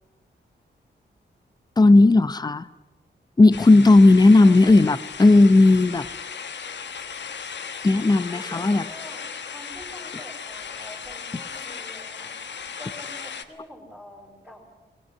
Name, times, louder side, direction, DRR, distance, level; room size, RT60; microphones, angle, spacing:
voice 1, 1.8-2.7 3.4-6.1 7.8-8.9, left 2 dB, 20° left, 15 dB, 0.7 m, -15 dB
sound 1, 3.5-13.4, left 6 dB, 70° left, 1.4 m, -36 dB
voice 2, 4.4-5.0 8.2-9.3 9.5-12.4 12.8-14.6, equal, 5° left, -6 dB, 5.5 m, -45 dB
21.5 x 19.5 x 9.6 m, 1.2 s
wide cardioid pair, 130°, 19 cm